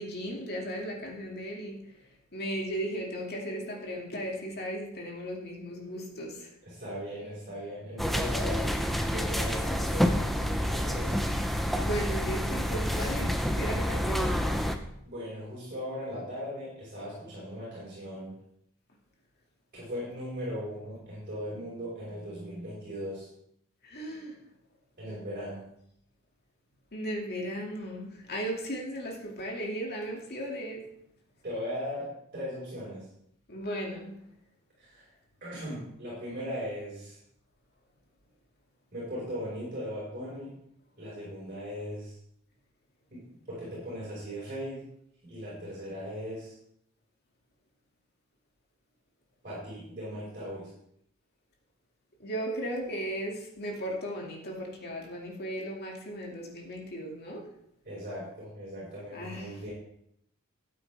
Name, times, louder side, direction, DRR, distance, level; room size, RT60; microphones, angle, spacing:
voice 1, 0.0-1.8 2.3-6.5 11.7-14.6 23.8-24.4 26.9-30.8 33.5-34.2 52.2-57.4 59.1-59.7, right 1 dB, 45° left, -1 dB, 2.4 m, -36 dB
voice 2, 6.6-11.2 15.0-18.3 19.7-23.3 25.0-25.6 31.4-33.1 34.8-35.1 35.4-37.2 38.9-40.5 41.0-42.2 43.1-44.8 45.2-46.5 49.4-50.7 57.8-59.7, equal, 40° right, -8 dB, 5.1 m, -38 dB
sound 1, 8.0-14.8, equal, ahead, 0.7 m, -28 dB
12.5 x 9.1 x 3.5 m, 0.72 s
head